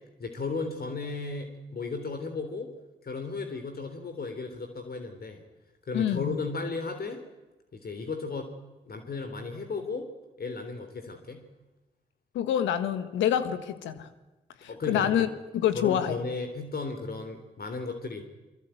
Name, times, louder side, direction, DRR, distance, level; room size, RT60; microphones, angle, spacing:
voice 1, 0.2-2.7 3.0-5.4 5.9-7.2 7.7-8.5 8.9-10.1 10.4-11.4 14.7-15.2 15.7-18.2, left 3 dB, 55° left, 6 dB, 3.7 m, -35 dB
voice 2, 5.9-6.4 12.3-14.1 14.6-16.2, left 10 dB, 85° left, 11 dB, 1.6 m, -27 dB
23.5 x 23.0 x 9.3 m, 1.1 s
hypercardioid pair, 40°, 19 cm